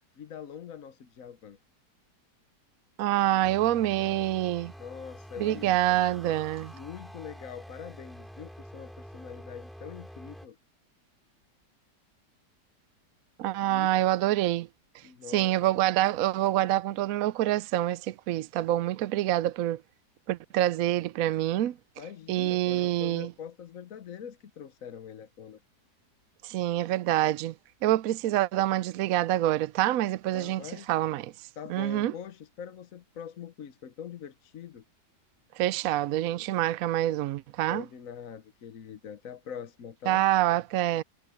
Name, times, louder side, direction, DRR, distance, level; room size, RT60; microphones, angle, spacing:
voice 1, 0.2-1.6 3.3-4.3 4.8-6.2 6.7-10.6 13.6-13.9 15.0-15.7 22.0-25.6 30.3-30.9 31.6-34.8 37.7-40.2, left 8 dB, 60° left, 1.2 m, -44 dB
voice 2, 3.0-4.7 5.4-6.7 13.4-14.7 15.3-19.8 20.3-21.8 22.3-23.3 26.4-27.5 27.8-30.6 30.9-31.3 31.7-32.1 35.6-37.8 40.1-41.0, right 14 dB, 70° right, 0.9 m, -26 dB
sound 1, 3.4-10.5, equal, ahead, 5.4 m, -47 dB
omnidirectional pair, 1.8 m